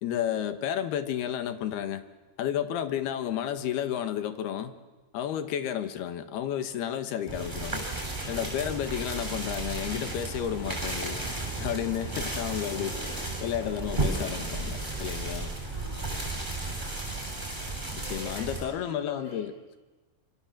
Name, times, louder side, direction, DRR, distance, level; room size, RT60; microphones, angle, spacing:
voice 1, 0.0-2.0 2.4-4.7 5.1-7.8 8.3-11.2 11.6-15.5 17.9-19.8, left 10 dB, 80° left, 9 dB, 3.6 m, -32 dB
Ramas de arbol, 7.3-18.6, right 2 dB, 10° right, 6.9 m, -34 dB
voice 2, 15.7-16.4 18.0-19.5, left 2 dB, 45° left, -1 dB, 6.6 m, -44 dB
28.0 x 27.0 x 7.6 m, 1.2 s
omnidirectional pair, 4.5 m